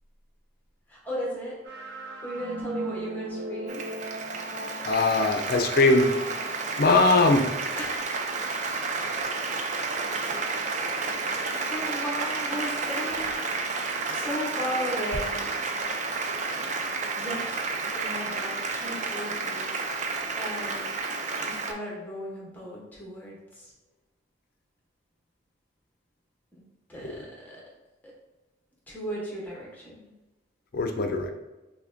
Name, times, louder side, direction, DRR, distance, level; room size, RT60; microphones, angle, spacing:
voice 1, 0.9-2.0 2.2-3.9 7.7-8.2 11.7-15.5 17.2-17.5 17.9-19.7 20.4-20.9 21.3-23.7 26.5-26.6 26.9-27.6 28.0-28.1 28.9-30.1, equal, 10° left, -5 dB, 0.9 m, -36 dB
sound 1, 1.6-8.5, right 1 dB, 65° right, 0.9 m, -39 dB
Applause, 3.7-21.7, right 4 dB, 40° right, 0.3 m, -31 dB
voice 2, 4.8-6.1 6.8-7.4 30.7-31.3, left 2 dB, 50° left, 5 dB, 0.4 m, -21 dB
5.7 x 2.1 x 2.5 m, 1.1 s
head